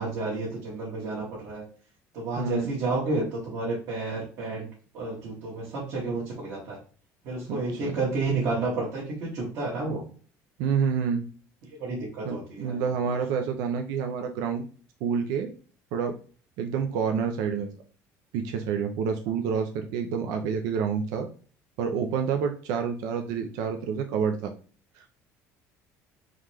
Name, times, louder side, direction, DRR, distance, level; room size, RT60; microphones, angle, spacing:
voice 1, 0.0-1.6 2.1-4.7 4.9-6.8 7.2-10.0 11.8-12.9, right 3 dB, 55° right, -6 dB, 1.5 m, -31 dB
voice 2, 2.4-2.7 7.5-8.0 10.6-11.2 12.2-14.7 15.0-15.5 15.9-16.2 16.6-17.7 18.3-21.3 21.8-24.5 25.0-25.1, right 6 dB, 80° right, 6 dB, 0.5 m, -28 dB
3.9 x 3.1 x 3.3 m, 0.41 s
cardioid pair, 145°, 6 cm